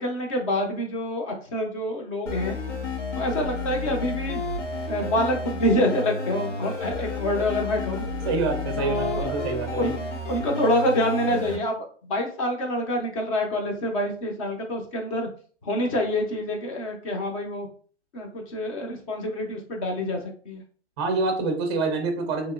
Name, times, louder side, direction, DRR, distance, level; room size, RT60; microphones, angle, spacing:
voice 1, 0.0-2.5 3.2-4.4 4.9-8.0 8.8-10.0 10.3-11.8 12.1-15.3 15.6-17.7 18.1-20.2 20.5-20.6, left 1 dB, 30° left, 2 dB, 0.6 m, -26 dB
sound 1, 2.3-11.6, left 3 dB, 90° left, 1.1 m, -31 dB
voice 2, 8.2-9.9 21.0-22.5, right 3 dB, 25° right, 4 dB, 0.5 m, -27 dB
2.9 x 2.7 x 2.4 m, 0.43 s
hypercardioid pair, 145°, 36 cm